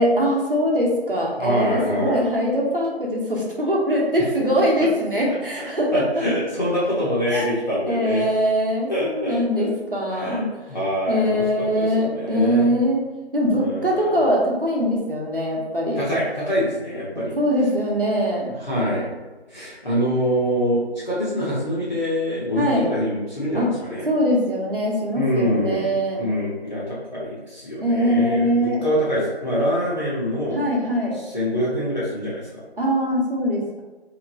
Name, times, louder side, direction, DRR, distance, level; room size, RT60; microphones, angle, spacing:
voice 1, 0.0-5.9 7.3-7.5 7.9-10.5 11.1-13.0 13.3-16.0 17.4-18.5 22.6-22.9 23.5-23.7 24.1-26.2 27.8-28.9 30.5-31.2 32.8-33.8, equal, 55° right, -2 dB, 0.9 m, -22 dB
voice 2, 1.4-2.2 5.3-5.4 5.9-8.3 8.9-9.7 10.1-12.7 13.5-14.2 16.0-17.3 18.6-19.1 19.5-24.1 25.1-28.5 28.8-30.6 31.1-32.6, equal, 40° left, -9 dB, 0.9 m, -25 dB
3.5 x 2.9 x 2.7 m, 1.2 s
figure-of-eight pair, 165°, 33 cm